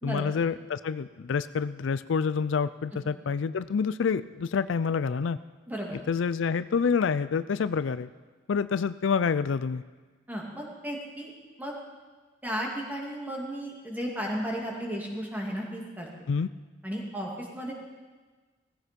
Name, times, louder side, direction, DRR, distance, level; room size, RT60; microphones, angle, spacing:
voice 1, 0.0-5.4 6.1-8.1 8.5-9.8 16.3-16.5, left 5 dB, 75° left, 15 dB, 0.4 m, -27 dB
voice 2, 5.7-6.0 10.3-11.3 11.6-11.8 12.4-16.1 16.8-17.7, equal, 10° right, -2 dB, 2.5 m, -34 dB
17.5 x 14.5 x 5.2 m, 1.4 s
head